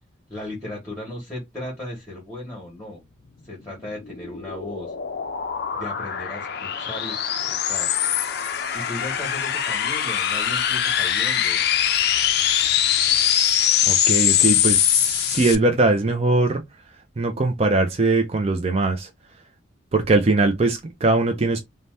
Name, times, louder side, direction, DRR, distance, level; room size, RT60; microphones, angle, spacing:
voice 1, 0.3-3.0 3.4-4.9 5.7-7.9 8.7-11.6, left 1 dB, 5° left, 1.2 m, -36 dB
sound 1, 3.7-15.6, left 10 dB, 55° left, 0.4 m, -22 dB
voice 2, 13.9-16.6 17.2-19.1 19.9-21.6, right 2 dB, 30° right, 0.4 m, -21 dB
2.7 x 2.1 x 3.3 m
head